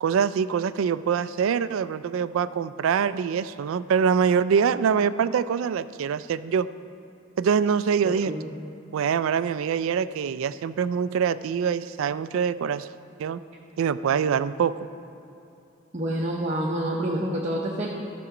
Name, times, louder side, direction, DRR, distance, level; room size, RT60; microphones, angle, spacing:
voice 1, 0.0-6.7 7.4-8.3 8.9-12.9 13.2-13.4 13.8-14.9, right 7 dB, 75° right, 15 dB, 0.3 m, -24 dB
voice 2, 8.0-8.5 15.9-17.9, right 1 dB, 30° right, -4 dB, 0.7 m, -28 dB
13.5 x 6.1 x 4.9 m, 2.8 s
head